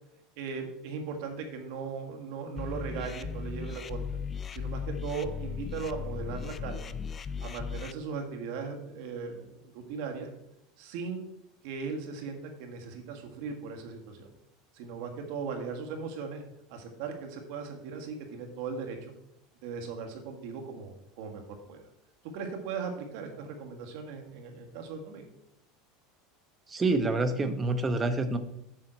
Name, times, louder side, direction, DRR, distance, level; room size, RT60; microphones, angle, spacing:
voice 1, 0.4-4.2 4.5-7.0 7.4-10.3 10.8-11.3 11.6-14.3 14.7-16.4 16.7-19.1 19.6-21.8 22.3-25.2, right 5 dB, 65° right, 3 dB, 1.6 m, -38 dB
sound 1, 2.6-7.9, left 6 dB, 25° left, 0.3 m, -37 dB
voice 2, 26.7-28.4, right 2 dB, 20° right, 8 dB, 0.9 m, -27 dB
7.5 x 7.4 x 4.4 m, 0.79 s
supercardioid pair, 140°, 0 cm